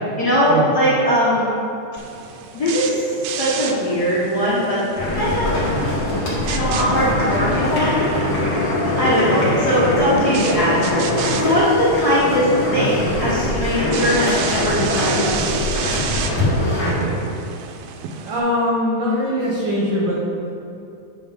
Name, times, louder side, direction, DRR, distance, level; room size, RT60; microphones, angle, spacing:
voice 1, 0.2-1.5 2.5-4.8 5.1-5.6 6.4-8.1 8.9-15.7, equal, 75° left, -10 dB, 0.8 m, -20 dB
sound 1, 2.0-18.4, right 7 dB, 80° right, 1.7 m, -33 dB
sound 2, 5.0-16.9, left 1 dB, 40° left, 1.5 m, -22 dB
voice 2, 16.8-17.2 18.2-20.2, equal, 65° right, -4 dB, 1.6 m, -22 dB
8.6 x 3.9 x 5.0 m, 2.7 s
omnidirectional pair, 3.6 m